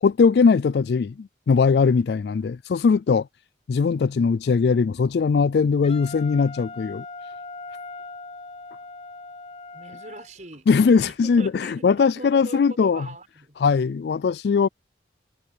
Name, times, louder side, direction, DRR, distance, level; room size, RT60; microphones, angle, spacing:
voice 1, 0.0-3.3 3.7-7.0 10.7-13.1 13.6-14.7, left 5 dB, 70° left, 0.3 m, -20 dB
Wind instrument woodwind instrument, 5.8-10.3, left 3 dB, 35° left, 5.7 m, -40 dB
voice 2, 9.7-10.7 11.0-13.6, right 1 dB, 45° right, 5.6 m, -41 dB
head